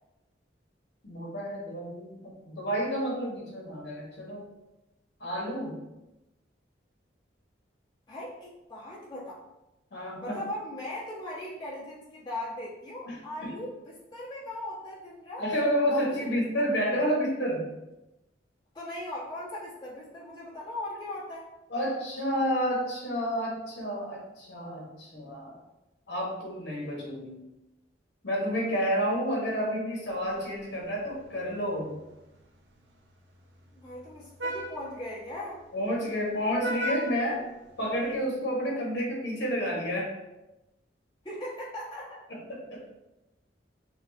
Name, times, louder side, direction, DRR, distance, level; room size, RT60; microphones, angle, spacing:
voice 1, 1.0-4.5 5.2-5.8 9.9-10.4 13.1-13.5 15.4-17.7 21.7-25.6 26.1-27.3 28.2-31.9 35.7-37.4 37.8-40.1 42.3-42.8, equal, 65° left, -3 dB, 1.4 m, -30 dB
voice 2, 8.1-9.4 10.2-15.4 15.9-16.3 17.0-17.2 18.7-21.5 33.7-35.6 41.2-42.2, left 1 dB, 25° left, -9 dB, 1.5 m, -39 dB
Vehicle horn car horn honking, 30.1-38.2, right 1 dB, 75° right, 0.6 m, -41 dB
6.4 x 2.4 x 2.7 m, 0.97 s
head